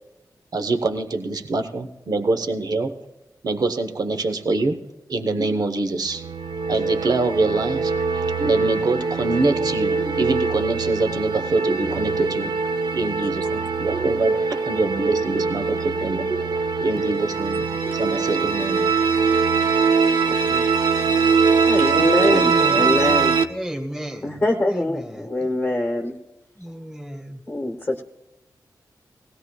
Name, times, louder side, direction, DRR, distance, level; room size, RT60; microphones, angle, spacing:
voice 1, 0.5-3.0 3.4-4.8 5.1-6.2 6.7-12.5 12.9-18.8 22.6-22.9, right 3 dB, 65° right, 7 dB, 1.0 m, -25 dB
sound 1, 6.1-23.4, right 5 dB, 80° right, 0.6 m, -22 dB
voice 2, 20.2-20.6 21.7-23.4 24.2-26.2 27.5-28.0, left 1 dB, 25° left, 1 dB, 1.1 m, -24 dB
voice 3, 22.3-23.0 23.5-24.4 24.7-25.3 26.6-27.4, equal, 5° right, 1 dB, 1.8 m, -33 dB
19.5 x 16.0 x 2.3 m, 1.0 s
cardioid pair, 60°, 7 cm